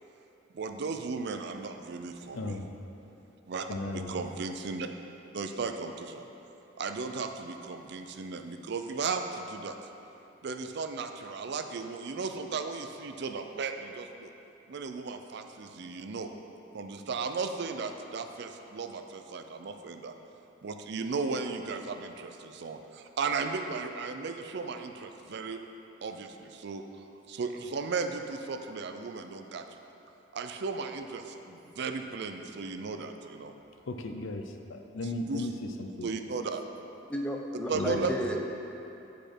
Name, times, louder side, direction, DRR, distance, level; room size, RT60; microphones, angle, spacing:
voice 1, 0.5-2.5 3.5-3.7 3.9-4.9 5.3-6.3 6.8-9.8 10.4-14.3 14.7-16.3 16.7-20.1 20.6-25.6 26.0-26.8 27.3-29.6 30.3-33.5 35.0-35.5 36.0-36.6 37.7-38.3, right 4 dB, 55° right, 6 dB, 0.4 m, -35 dB
voice 2, 2.3-2.7 3.7-4.1 33.9-36.1 37.7-38.1, left 2 dB, 75° left, 5 dB, 0.5 m, -36 dB
voice 3, 37.1-38.4, equal, 5° left, 0 dB, 0.6 m, -32 dB
8.6 x 5.1 x 4.4 m, 2.9 s
head